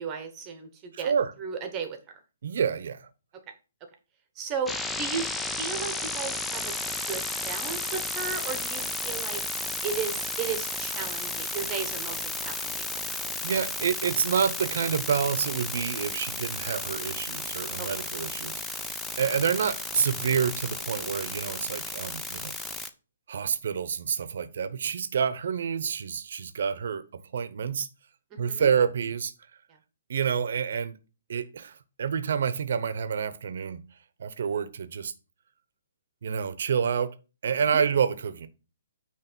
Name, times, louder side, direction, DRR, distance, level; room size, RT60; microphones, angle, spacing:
voice 1, 0.0-1.1 1.4-2.2 4.4-5.3 5.6-6.8 7.1-9.4 9.8-13.3 17.8-17.9 28.3-28.7 37.7-37.8, right 6 dB, 15° right, 1.0 m, -35 dB
voice 2, 0.9-1.3 2.4-3.1 13.4-18.9 19.2-22.5 23.3-27.0 27.3-27.9 28.4-29.3 30.1-30.9 31.3-33.8 34.2-35.1 36.2-37.1 37.4-38.5, right 7 dB, 55° right, 0.8 m, -28 dB
sound 1, 4.7-22.9, left 2 dB, 5° left, 0.4 m, -33 dB
9.1 x 3.2 x 6.1 m
hypercardioid pair, 170°, 0 cm